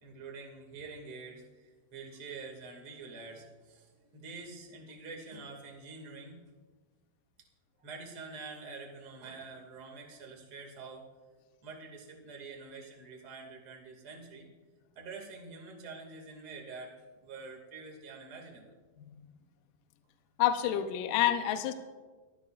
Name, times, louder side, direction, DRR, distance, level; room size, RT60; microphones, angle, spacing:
voice 1, 0.0-6.4 7.8-11.0 11.6-14.5 15.0-18.7, right 4 dB, 35° right, 1 dB, 2.7 m, -46 dB
voice 2, 20.4-21.7, left 11 dB, 80° left, 8 dB, 1.9 m, -28 dB
23.5 x 16.5 x 2.6 m, 1.3 s
omnidirectional pair, 5.0 m